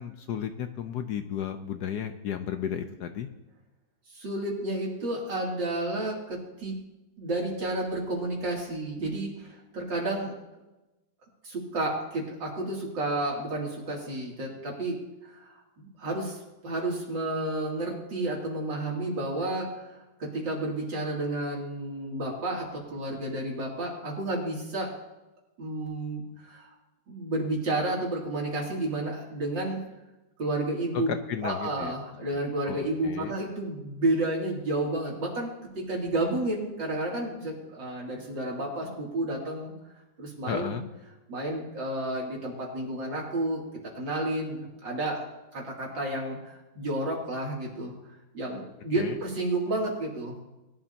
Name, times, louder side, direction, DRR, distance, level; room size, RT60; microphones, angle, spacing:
voice 1, 0.0-3.3 30.9-31.9 32.7-33.3 40.5-40.8 49.0-49.1, left 8 dB, 65° left, 8 dB, 1.1 m, -33 dB
voice 2, 4.1-6.7 7.2-10.3 11.4-15.0 15.2-16.4 16.6-24.9 25.6-26.7 27.1-29.8 30.4-31.1 31.4-35.5 35.8-39.7 40.2-40.8 41.3-43.6 44.0-45.2 45.5-47.9 48.3-50.4, right 2 dB, 65° right, -2 dB, 3.5 m, -31 dB
21.0 x 11.5 x 2.8 m, 1.0 s
omnidirectional pair, 2.1 m